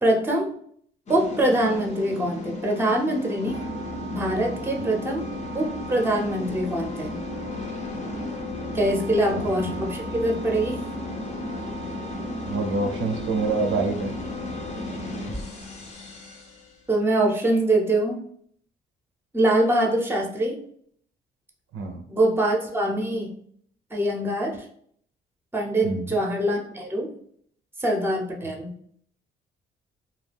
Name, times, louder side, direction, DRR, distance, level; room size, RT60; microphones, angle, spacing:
voice 1, 0.0-0.5 1.1-3.6 4.1-5.3 5.5-7.2 8.7-10.8 16.9-18.2 19.3-20.6 22.1-23.4 23.9-24.7 25.5-27.1 27.8-28.7, right 1 dB, 10° right, 1 dB, 0.7 m, -24 dB
sound 1, 1.1-16.7, left 1 dB, 35° left, 0.6 m, -34 dB
voice 2, 9.3-9.7 12.5-14.1 21.7-22.0 25.8-26.2, right 3 dB, 80° right, 4 dB, 0.5 m, -27 dB
2.3 x 2.2 x 3.3 m, 0.63 s
cardioid pair, 90°, 20 cm